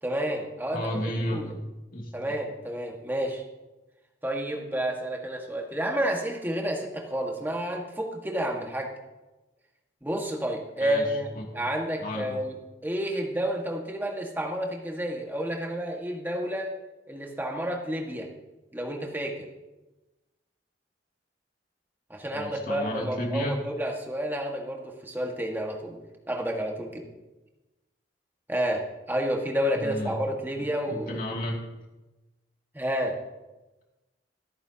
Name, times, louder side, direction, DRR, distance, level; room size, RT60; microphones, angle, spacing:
voice 1, 0.0-1.0 1.3-1.5 2.1-3.4 4.2-8.9 10.0-11.3 11.5-12.5 12.8-16.7 17.1-18.3 18.7-19.5 22.1-26.0 26.3-27.0 28.5-31.2 32.7-33.2, equal, 10° right, 0 dB, 1.8 m, -30 dB
voice 2, 0.7-1.6 1.9-2.1 10.8-11.5 12.0-12.4 22.3-23.6 29.7-30.2 30.6-31.7, equal, 50° left, -1 dB, 2.6 m, -33 dB
26.5 x 8.8 x 2.9 m, 1.1 s
head